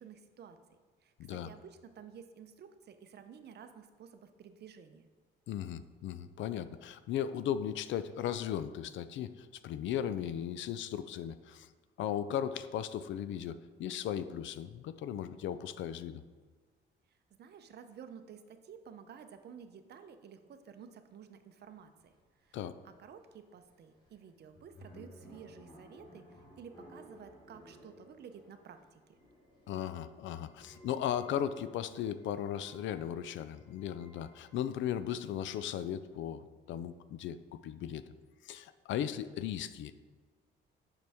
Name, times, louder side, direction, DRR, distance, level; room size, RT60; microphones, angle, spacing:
voice 1, 0.0-5.1 17.3-22.1 22.4-22.6 22.8-29.0, right 7 dB, 55° right, 9 dB, 0.6 m, -52 dB
voice 2, 5.5-11.7 12.0-16.2 22.5-22.7 29.7-37.4 37.6-38.0 38.4-39.9, left 10 dB, 75° left, 13 dB, 0.4 m, -37 dB
sound 1, 22.0-34.7, equal, 20° left, 1.5 m, -58 dB
6.7 x 5.9 x 3.5 m, 1.5 s
cardioid pair, 90°, 20 cm